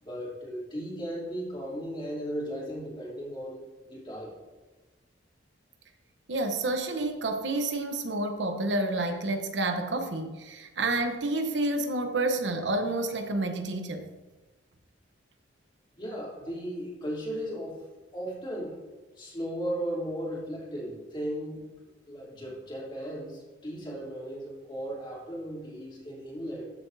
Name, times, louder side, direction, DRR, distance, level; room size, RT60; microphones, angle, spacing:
voice 1, 0.0-4.3 16.0-17.8 18.1-18.8 19.2-21.7 22.0-26.7, equal, 25° left, -6 dB, 3.2 m, -36 dB
voice 2, 6.3-14.0, right 2 dB, 70° right, 6 dB, 1.0 m, -29 dB
13.5 x 7.7 x 2.7 m, 1.2 s
head